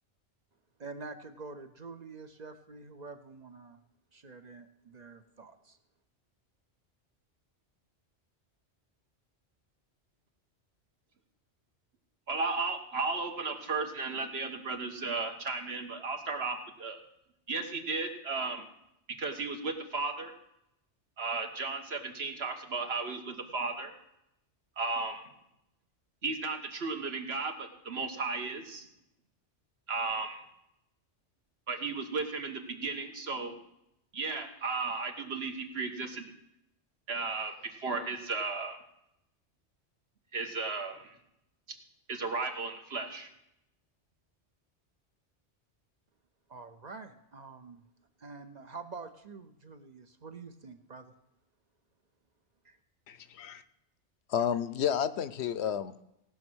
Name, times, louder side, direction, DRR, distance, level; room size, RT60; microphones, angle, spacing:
voice 1, 0.8-3.8 4.1-5.8 46.5-47.8 48.2-51.1 52.6-52.8, right 4 dB, 45° right, 8 dB, 0.7 m, -47 dB
voice 2, 12.3-17.0 17.5-18.7 19.2-20.3 21.2-23.9 24.8-25.2 26.2-28.9 29.9-30.4 31.7-33.6 34.1-36.3 37.1-38.8 40.3-41.1 42.1-43.3, right 4 dB, 65° right, 5 dB, 1.6 m, -35 dB
voice 3, 53.1-53.6 54.3-56.0, left 8 dB, 70° left, 14 dB, 0.9 m, -31 dB
18.0 x 6.1 x 6.2 m, 0.82 s
omnidirectional pair, 1.2 m